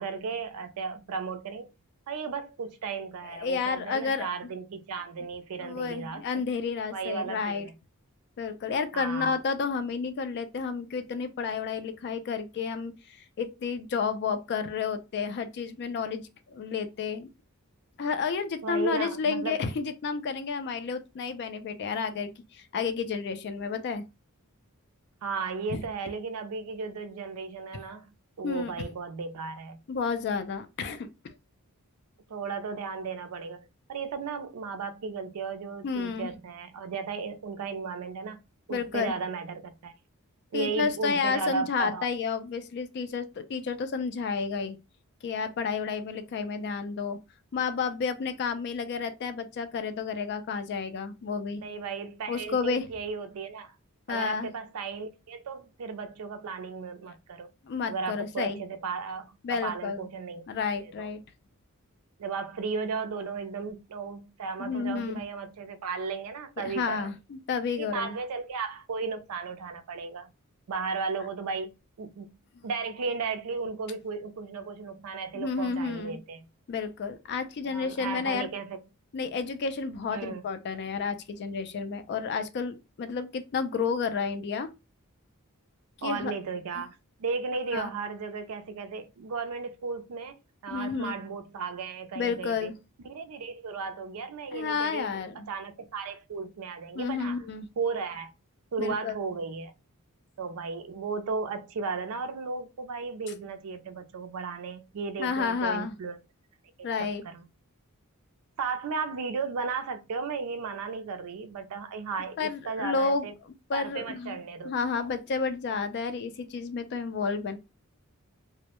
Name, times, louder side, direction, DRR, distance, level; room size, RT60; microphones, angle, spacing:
voice 1, 0.0-1.7 2.1-6.2 6.9-7.7 8.9-9.4 18.6-19.6 25.2-28.0 28.4-29.8 32.3-38.4 38.7-39.9 40.5-42.1 51.6-53.7 54.1-57.5 57.9-60.4 60.8-61.1 62.2-67.1 67.8-70.3 70.7-71.7 72.0-72.3 72.6-76.5 77.6-78.8 80.1-80.4 86.0-86.9 87.2-90.4 90.6-92.7 93.1-97.4 97.8-98.3 98.7-99.7 100.4-106.2 106.8-106.9 107.2-107.4 108.6-113.3 113.7-115.1, right 5 dB, 75° right, 0.4 m, -35 dB
voice 2, 3.2-4.5 5.6-7.7 8.4-17.3 18.0-24.1 25.7-25.9 28.4-28.7 29.9-31.3 35.8-36.3 38.7-39.1 40.5-44.8 45.2-47.2 47.5-51.6 52.3-52.9 54.1-54.5 57.6-58.6 59.4-60.0 60.5-61.2 64.6-65.2 66.6-68.2 72.5-72.6 75.3-76.2 76.7-78.5 79.1-84.7 86.0-86.3 87.7-87.9 90.7-91.1 92.2-92.7 94.5-95.5 97.0-97.7 98.8-99.2 105.2-105.9 106.8-107.2 112.4-113.3 113.7-114.4 114.6-117.6, left 5 dB, 50° left, 0.3 m, -31 dB
2.1 x 2.0 x 2.9 m
head